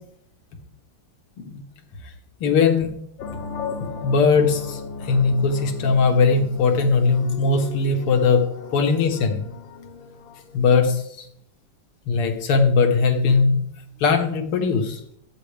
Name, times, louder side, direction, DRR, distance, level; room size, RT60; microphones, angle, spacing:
voice 1, 2.4-3.0 3.8-8.4 8.7-9.4 10.5-11.3 12.1-13.6 14.0-15.0, left 4 dB, 80° left, 5 dB, 2.2 m, -19 dB
sound 1, 3.2-10.6, left 5 dB, 65° left, 1.6 m, -36 dB
14.0 x 9.0 x 3.3 m, 0.71 s
omnidirectional pair, 2.4 m